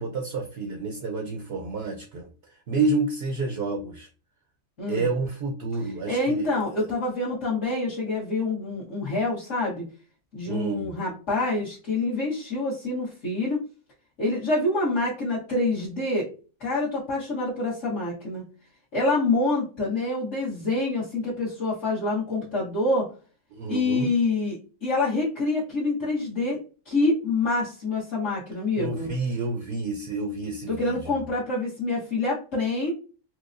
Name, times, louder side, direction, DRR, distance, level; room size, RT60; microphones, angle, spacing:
voice 1, 0.0-2.3 2.7-4.1 4.9-6.5 10.5-10.9 23.5-24.1 28.8-31.0, right 3 dB, 60° right, 2 dB, 0.7 m, -29 dB
voice 2, 6.1-9.9 10.3-13.6 14.2-16.3 16.6-18.5 18.9-23.1 23.7-26.6 26.8-29.1 30.7-32.9, left 2 dB, 60° left, -11 dB, 1.6 m, -26 dB
4.5 x 2.1 x 2.5 m, 0.37 s
omnidirectional pair, 1.4 m